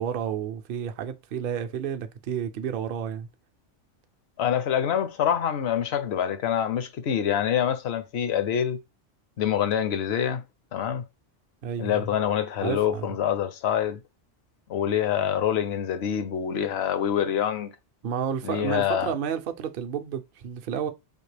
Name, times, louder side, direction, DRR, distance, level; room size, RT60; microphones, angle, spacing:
voice 1, 0.0-3.3 11.6-12.1 12.6-13.1 18.0-20.9, right 8 dB, 55° right, 0.7 m, -31 dB
voice 2, 4.4-8.8 9.4-10.4 10.7-11.0 11.8-14.0 14.7-17.7 18.4-19.1, left 9 dB, 65° left, 0.9 m, -26 dB
4.4 x 2.8 x 3.2 m
omnidirectional pair, 1.2 m